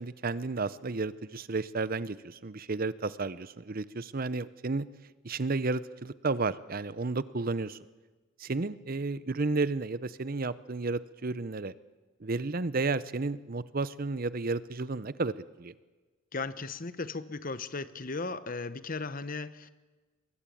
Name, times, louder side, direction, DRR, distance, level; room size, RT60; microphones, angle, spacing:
voice 1, 0.0-4.9 5.2-7.8 8.4-11.7 12.2-15.7, right 3 dB, 45° right, 17 dB, 0.7 m, -32 dB
voice 2, 16.3-19.7, left 3 dB, 40° left, 15 dB, 0.9 m, -36 dB
24.5 x 21.5 x 8.6 m, 1.3 s
head